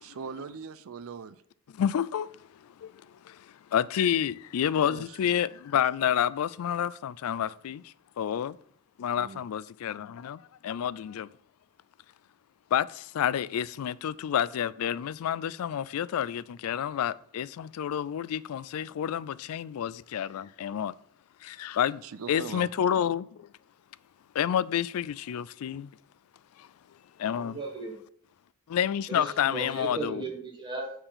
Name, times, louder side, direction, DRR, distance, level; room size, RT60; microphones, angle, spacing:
voice 1, 0.0-1.4 4.7-5.3 9.1-9.4 22.0-22.7, right 5 dB, 75° right, 0.4 m, -41 dB
voice 2, 1.8-2.4 2.6-2.9 3.2-8.6 9.0-11.3 12.7-20.9 21.4-22.0 22.3-23.5 24.3-25.9 26.6-26.7 27.2-27.6 28.7-30.2, left 9 dB, 80° left, 0.3 m, -29 dB
voice 3, 27.3-28.0 29.1-30.9, right 3 dB, 20° right, 1.2 m, -36 dB
6.7 x 4.6 x 5.6 m
head